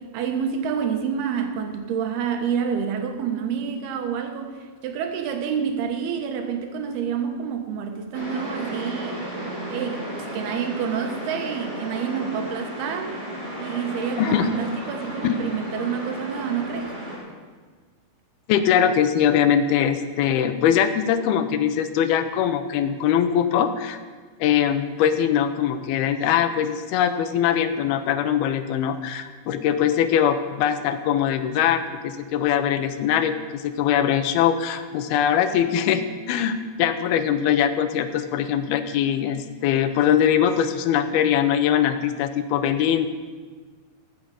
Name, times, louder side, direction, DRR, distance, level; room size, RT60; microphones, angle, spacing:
voice 1, 0.0-9.3 9.7-13.2 13.6-16.9, right 7 dB, 85° right, 5 dB, 3.2 m, -28 dB
sound 1, 8.1-17.2, equal, 15° right, 5.2 m, -34 dB
voice 2, 18.5-24.0 24.4-36.0 36.3-43.1, left 9 dB, 80° left, 10 dB, 2.7 m, -22 dB
14.5 x 7.8 x 8.5 m, 1.5 s
omnidirectional pair, 4.4 m